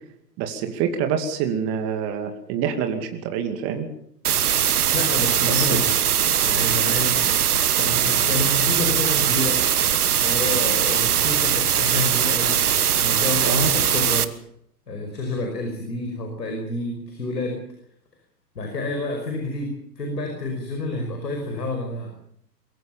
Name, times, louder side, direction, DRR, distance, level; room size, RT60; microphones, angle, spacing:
voice 1, 0.4-3.9 5.4-5.8 13.4-13.7, right 8 dB, 30° right, 6 dB, 2.5 m, -26 dB
sound 1, 4.2-14.2, right 9 dB, 60° right, 1.5 m, -21 dB
voice 2, 4.9-5.9 6.5-7.3 7.8-9.6 10.2-12.6 13.0-14.3 14.9-17.6 18.6-22.1, left 2 dB, 75° left, 4 dB, 5.4 m, -28 dB
23.0 x 16.0 x 7.1 m, 0.71 s
figure-of-eight pair, 120°, 50 cm